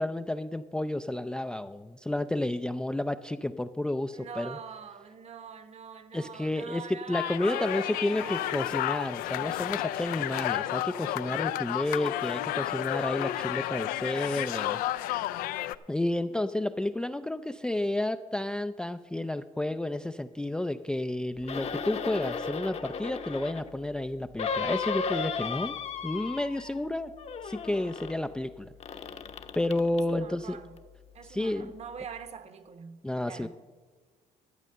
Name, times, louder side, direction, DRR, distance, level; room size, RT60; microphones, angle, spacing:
voice 1, 0.0-4.6 6.1-15.1 15.9-25.8 26.0-27.1 27.4-28.7 29.5-30.6 31.2-31.7 33.0-33.5, left 1 dB, 5° left, 0.3 m, -31 dB
voice 2, 4.1-8.7 30.1-30.8 31.1-33.5, right 7 dB, 50° right, 1.2 m, -44 dB
sound 1, 7.1-15.8, left 14 dB, 85° left, 0.4 m, -31 dB
sound 2, 21.4-23.7 24.4-26.9 27.1-28.2 28.8-30.1 30.8-30.9, left 6 dB, 45° left, 0.9 m, -35 dB
12.5 x 7.6 x 6.6 m
cardioid pair, 90°, 14 cm